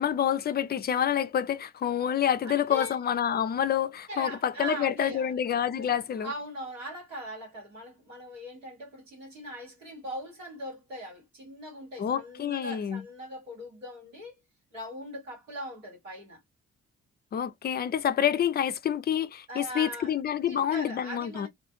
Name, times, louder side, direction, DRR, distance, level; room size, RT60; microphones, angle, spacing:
voice 1, 0.0-6.3 12.0-13.0 17.3-21.5, left 9 dB, 30° left, 0.4 m, -28 dB
voice 2, 2.4-3.0 4.1-5.4 5.8-5.9 6.2-14.3 14.7-16.4 19.5-20.1 20.5-21.5, equal, 90° right, 1.2 m, -40 dB
2.4 x 2.3 x 2.5 m
figure-of-eight pair, 40°, 37 cm